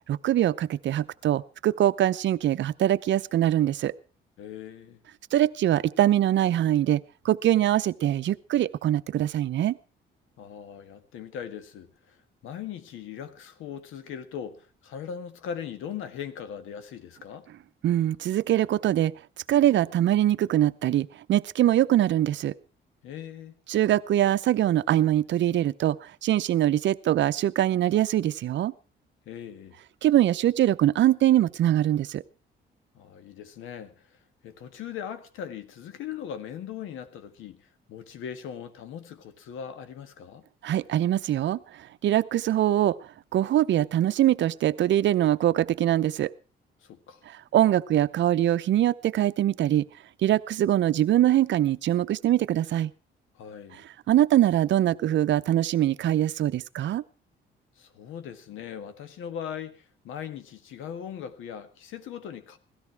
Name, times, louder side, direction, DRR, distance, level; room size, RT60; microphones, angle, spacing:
voice 1, 0.1-3.9 5.3-9.8 17.8-19.1 19.5-22.5 23.7-28.7 30.0-32.2 40.6-43.0 43.3-46.3 47.3-49.9 50.2-52.9 54.1-57.0, right 12 dB, 65° right, 0.7 m, -23 dB
voice 2, 4.4-5.0 10.4-17.5 23.0-23.5 29.2-29.8 32.9-40.4 46.8-47.2 53.3-53.8 57.8-62.6, left 8 dB, 90° left, 1.7 m, -39 dB
17.0 x 13.5 x 4.6 m
cardioid pair, 90°, 20 cm